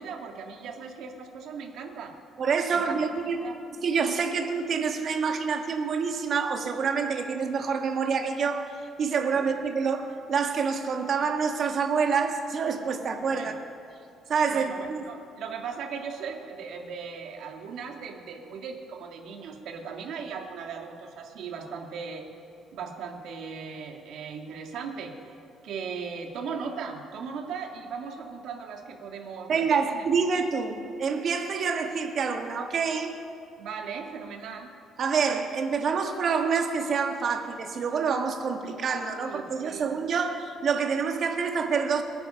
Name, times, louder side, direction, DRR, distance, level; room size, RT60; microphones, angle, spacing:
voice 1, 0.0-2.2 2.7-3.0 3.4-3.6 9.3-9.4 13.3-13.6 14.5-22.2 22.7-25.1 25.6-30.1 33.6-34.7 39.2-39.9, right 6 dB, 70° right, 2 dB, 2.2 m, -38 dB
voice 2, 2.4-3.4 3.8-8.7 9.0-13.5 14.3-15.0 29.5-33.1 35.0-42.0, right 5 dB, 45° right, 4 dB, 1.7 m, -27 dB
26.0 x 9.6 x 5.7 m, 2.6 s
cardioid pair, 140°, 0 cm